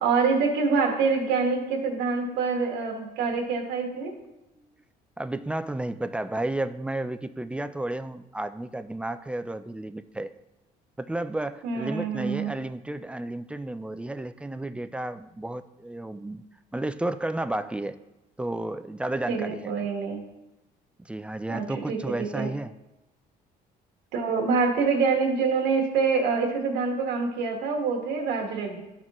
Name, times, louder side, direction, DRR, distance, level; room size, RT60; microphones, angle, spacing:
voice 1, 0.0-4.1 11.6-12.5 19.3-20.2 21.5-22.5 24.1-28.8, right 5 dB, 90° right, 0 dB, 1.5 m, -26 dB
voice 2, 5.2-10.3 11.0-16.4 16.7-18.0 18.4-19.9 21.0-22.7, right 1 dB, 5° right, 11 dB, 0.3 m, -32 dB
12.5 x 4.2 x 3.0 m, 0.98 s
cardioid pair, 110°, 17 cm